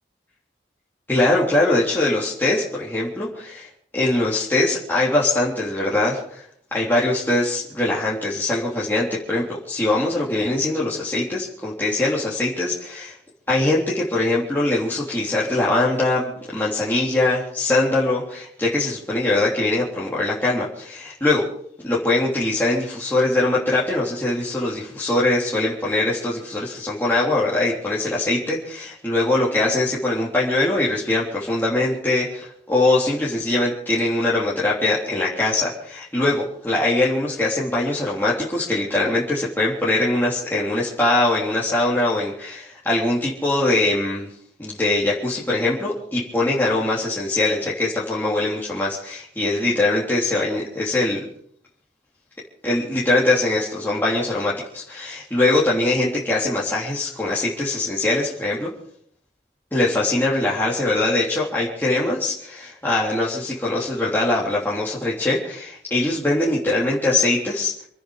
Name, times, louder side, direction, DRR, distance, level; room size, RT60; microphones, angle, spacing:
voice 1, 1.1-6.4 6.7-13.1 13.5-21.4 21.8-44.3 44.6-51.2 52.6-58.7 59.7-67.7, left 2 dB, 10° left, -7 dB, 3.5 m, -22 dB
27.5 x 9.8 x 5.1 m, 0.65 s
head